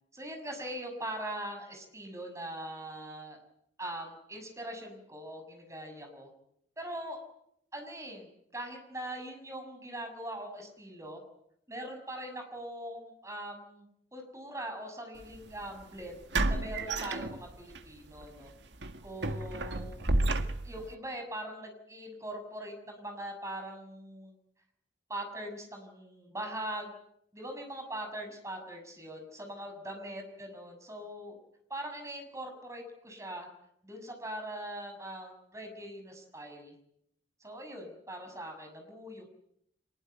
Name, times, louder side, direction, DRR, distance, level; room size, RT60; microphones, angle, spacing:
voice 1, 0.1-3.4 3.8-6.3 6.8-7.2 7.7-11.2 11.7-13.8 14.1-16.2 16.5-18.5 19.0-20.0 20.6-24.3 25.1-26.9 27.3-31.4 31.7-33.5 33.8-36.7 37.4-39.3, right 1 dB, 15° right, 4 dB, 6.5 m, -41 dB
sound 1, 15.2-15.4 16.3-17.8 18.2-18.4 18.8-20.9, right 2 dB, 75° right, 1.8 m, -31 dB
24.5 x 21.5 x 9.1 m, 0.74 s
head